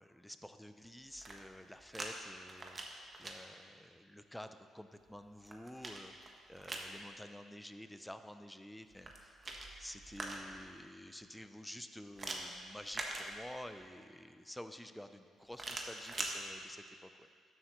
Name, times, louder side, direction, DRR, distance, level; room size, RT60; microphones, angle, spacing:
voice 1, 0.0-9.4 9.8-17.3, left 1 dB, 5° left, 9 dB, 0.5 m, -50 dB
sound 1, 1.1-2.1 2.4-3.3 5.1-6.9 8.9-10.7 12.2-13.8 15.5-16.3, right 2 dB, 30° right, 1.1 m, -44 dB
12.5 x 7.7 x 3.1 m, 2.1 s
cardioid pair, 90°, 0 cm